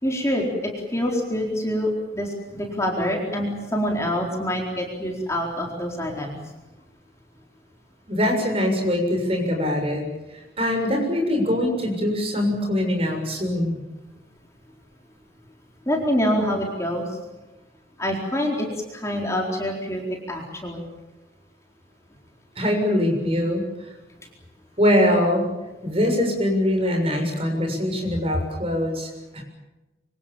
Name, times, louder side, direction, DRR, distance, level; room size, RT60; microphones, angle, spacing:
voice 1, 0.0-6.4 15.9-17.2 18.0-20.0 20.3-20.9, equal, 15° left, 0 dB, 4.3 m, -26 dB
voice 2, 8.1-10.0 10.3-13.8 22.6-23.9 24.8-25.5 25.8-29.4, left 1 dB, 35° right, 3 dB, 6.9 m, -23 dB
26.0 x 25.5 x 7.3 m, 1.1 s
head